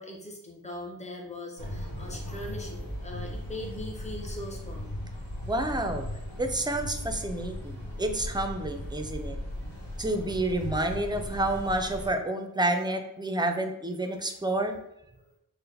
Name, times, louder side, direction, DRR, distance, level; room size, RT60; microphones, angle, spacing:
voice 1, 0.0-4.9 14.0-14.3, left 1 dB, 20° left, 0 dB, 0.8 m, -41 dB
sound 1, 1.6-12.1, left 1 dB, 70° left, 1.4 m, -37 dB
voice 2, 5.5-6.1 6.4-9.4 10.0-14.8, right 1 dB, 10° right, 6 dB, 0.4 m, -29 dB
4.5 x 2.1 x 3.3 m, 0.81 s
wide cardioid pair, 75°, 35 cm